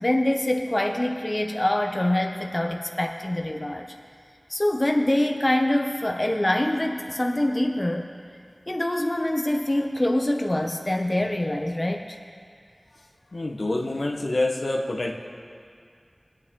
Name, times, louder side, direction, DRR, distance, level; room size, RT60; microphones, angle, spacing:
voice 1, 0.0-3.9 4.5-8.1 8.7-12.2, left 1 dB, 30° left, 2 dB, 0.9 m, -25 dB
voice 2, 13.3-15.1, left 2 dB, 75° left, 0 dB, 1.1 m, -26 dB
22.5 x 8.9 x 3.8 m, 2.2 s
wide cardioid pair, 55°, 0 cm